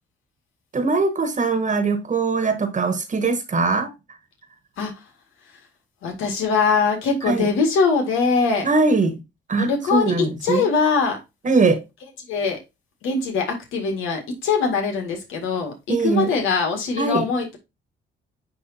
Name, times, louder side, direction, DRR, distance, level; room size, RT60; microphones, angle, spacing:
voice 1, 0.7-3.9 7.3-7.5 8.6-9.2 9.5-10.6 11.4-11.8 15.9-16.3 17.0-17.3, right 3 dB, 40° right, 1.4 m, -21 dB
voice 2, 6.0-8.7 9.6-10.1 10.4-11.2 12.3-12.6 13.0-13.5 13.7-17.6, left 5 dB, 90° left, 2.1 m, -22 dB
10.0 x 3.5 x 2.8 m
cardioid pair, 90°, 20 cm